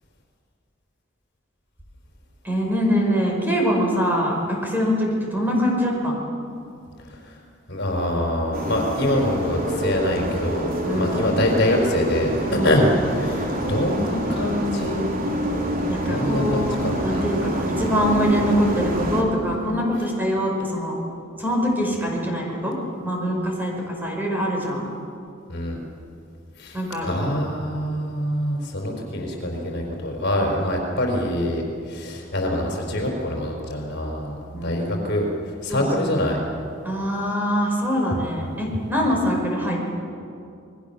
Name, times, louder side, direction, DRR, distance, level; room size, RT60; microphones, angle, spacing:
voice 1, 2.4-6.2 10.8-11.3 12.5-12.8 15.9-20.9 21.4-22.8 23.0-24.9 26.7-27.5 34.5-34.8 35.7-36.2 36.8-39.9, equal, 10° right, -1 dB, 5.3 m, -24 dB
voice 2, 7.0-7.4 7.7-12.9 13.1-15.0 16.0-17.3 25.5-25.8 26.6-36.4 39.1-39.2, left 1 dB, 60° left, 1 dB, 4.6 m, -25 dB
sound 1, 8.5-19.2, equal, 50° right, 3.4 m, -26 dB
28.5 x 20.5 x 7.1 m, 2.5 s
head